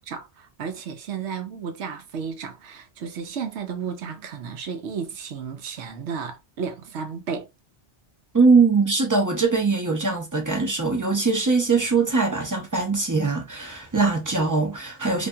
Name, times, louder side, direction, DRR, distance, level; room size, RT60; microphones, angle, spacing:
voice 1, 0.1-7.5, right 6 dB, 80° right, 0.9 m, -33 dB
voice 2, 8.3-15.3, right 4 dB, 25° right, 0.5 m, -21 dB
2.6 x 2.6 x 2.2 m
omnidirectional pair, 1.2 m